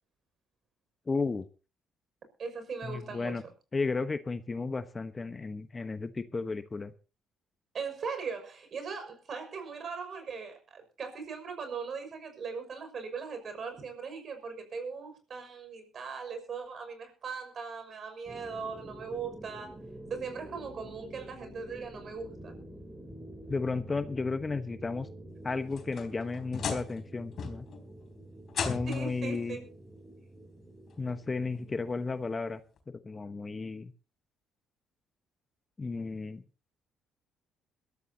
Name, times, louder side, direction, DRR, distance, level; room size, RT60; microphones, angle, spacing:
voice 1, 1.1-1.4 2.8-3.4 3.7-6.9 23.5-25.1 25.4-27.7 28.6-29.6 31.0-32.6 32.9-33.9 35.8-36.4, left 4 dB, 30° left, 1.2 m, -33 dB
voice 2, 2.4-3.5 7.7-19.7 20.1-22.6 28.8-29.6, right 5 dB, 50° right, 6.0 m, -39 dB
sound 1, 18.3-31.9, right 1 dB, 10° right, 3.5 m, -48 dB
sound 2, 25.5-27.1 27.4-27.8 28.5-29.2 30.4-30.5 31.1-31.2 32.8-32.9, left 6 dB, 55° left, 3.8 m, -36 dB
22.5 x 13.5 x 2.8 m
hypercardioid pair, 60°, 0 cm